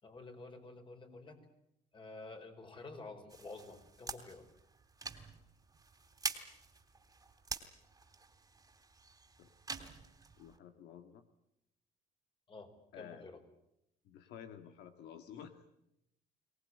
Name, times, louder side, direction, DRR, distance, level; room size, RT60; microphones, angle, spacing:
voice 1, 0.0-1.4 1.9-4.5 12.5-13.4, left 3 dB, 30° left, 6 dB, 4.7 m, -50 dB
sound 1, 3.3-10.6, right 4 dB, 20° right, 2.9 m, -46 dB
voice 2, 10.4-11.2 12.9-13.2 14.0-15.9, left 9 dB, 80° left, 8 dB, 1.7 m, -52 dB
24.0 x 18.5 x 9.8 m, 0.82 s
cardioid pair, 110°, 17 cm